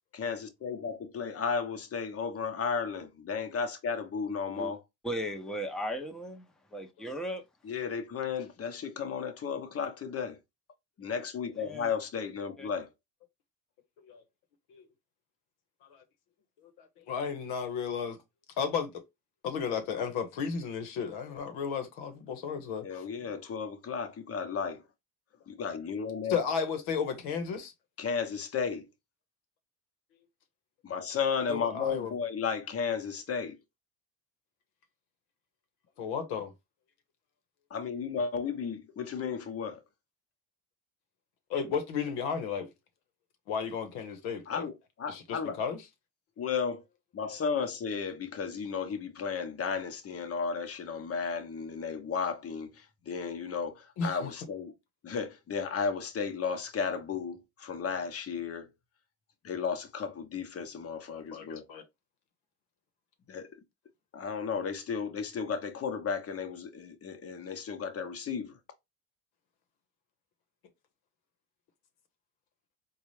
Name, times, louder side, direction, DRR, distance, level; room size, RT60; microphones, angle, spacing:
voice 1, 0.2-4.8 7.6-10.4 11.0-12.9 22.8-24.8 25.5-26.4 28.0-28.9 30.8-33.6 37.7-39.8 44.5-45.6 46.4-46.8 47.1-54.7 55.0-58.7 59.4-61.6 63.3-63.5 64.1-68.5, left 6 dB, 40° left, 0.9 m, -34 dB
voice 2, 5.0-7.4 11.6-11.9 12.6-12.7, equal, ahead, 0.7 m, -36 dB
voice 3, 16.6-18.2 18.6-19.0 19.4-23.1 26.3-27.7 31.5-32.1 36.0-36.5 41.5-42.7 43.5-44.7 45.1-45.8 47.2-47.4 54.0-54.3 61.1-61.8, left 6 dB, 80° left, 1.0 m, -34 dB
4.0 x 2.3 x 3.2 m
supercardioid pair, 95°, 38 cm